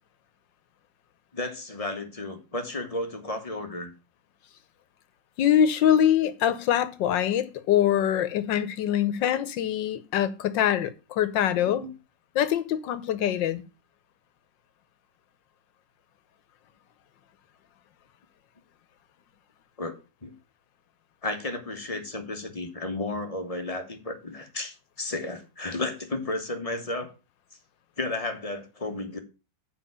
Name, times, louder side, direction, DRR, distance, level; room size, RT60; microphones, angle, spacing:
voice 1, 1.3-3.9 11.5-11.9 19.8-20.0 20.2-20.3 21.2-27.1 28.0-29.2, left 2 dB, 20° left, 1.4 m, -33 dB
voice 2, 5.4-11.8 12.3-13.6, left 10 dB, 90° left, 1.6 m, -24 dB
7.4 x 5.6 x 7.0 m
omnidirectional pair, 2.0 m